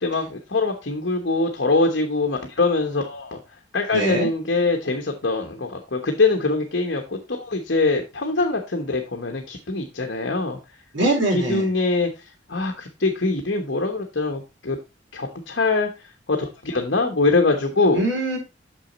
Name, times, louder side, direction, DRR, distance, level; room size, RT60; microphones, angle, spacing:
voice 1, 0.0-3.4 3.7-10.6 11.3-12.1 12.5-14.8 15.1-15.9 16.3-18.0, left 3 dB, 65° left, 3 dB, 1.1 m, -23 dB
voice 2, 3.9-4.3 10.9-11.7 17.9-18.4, right 1 dB, 85° right, -1 dB, 4.0 m, -22 dB
6.3 x 6.3 x 4.0 m, 0.26 s
head